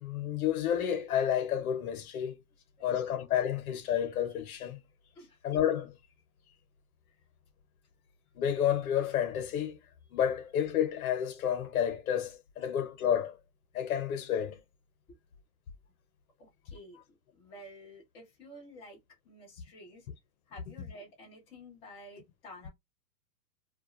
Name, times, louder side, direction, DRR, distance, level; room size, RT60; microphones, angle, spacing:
voice 1, 0.0-2.4 2.8-4.8 5.4-6.0 8.4-9.8 10.1-13.4 13.7-14.6, left 9 dB, 60° left, 0.9 m, -30 dB
voice 2, 16.4-17.0 17.3-19.0 19.2-20.1 20.5-22.7, equal, 5° left, 0.3 m, -51 dB
2.4 x 2.2 x 2.9 m
hypercardioid pair, 135°, 48 cm